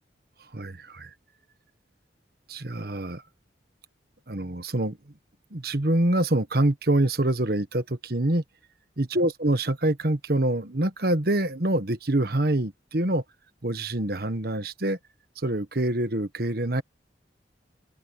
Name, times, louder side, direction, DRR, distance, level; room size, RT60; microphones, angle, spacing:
voice 1, 0.5-1.1 2.5-3.2 4.3-5.1 5.5-8.4 9.0-13.2 13.6-15.0 15.4-16.8, right 1 dB, 55° right, 1.4 m, -25 dB
head